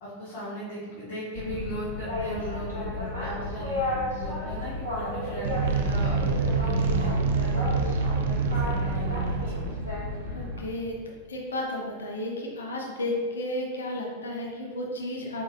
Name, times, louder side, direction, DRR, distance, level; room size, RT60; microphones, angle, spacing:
voice 1, 0.0-7.1 7.4-7.8 8.5-9.6, equal, 45° left, -10 dB, 1.5 m, -37 dB
Boat Water vehicle, 1.3-10.6, left 2 dB, 80° right, 1.4 m, -33 dB
sound 1, 5.4-10.6, right 4 dB, 55° right, 0.4 m, -27 dB
voice 2, 10.3-11.0 11.3-15.4, left 1 dB, 70° left, -1 dB, 0.8 m, -32 dB
4.8 x 4.0 x 2.3 m, 1.5 s
figure-of-eight pair, 90°, 0 cm